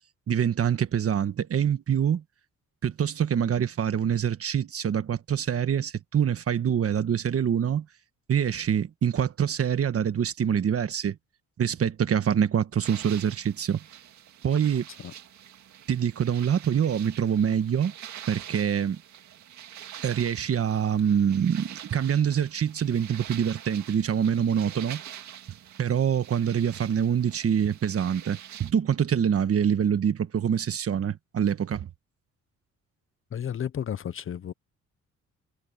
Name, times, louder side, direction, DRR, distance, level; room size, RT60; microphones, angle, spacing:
voice 1, 0.3-2.2 2.8-7.8 8.3-11.1 11.6-13.8 14.4-14.9 15.9-17.9 18.3-19.0 20.0-25.0 25.8-31.9, right 8 dB, 50° right, 1.5 m, -25 dB
sound 1, 12.8-28.7, right 10 dB, 70° right, 2.0 m, -45 dB
voice 2, 33.3-34.5, left 9 dB, 45° left, 0.8 m, -32 dB
cardioid pair, 90°, 30 cm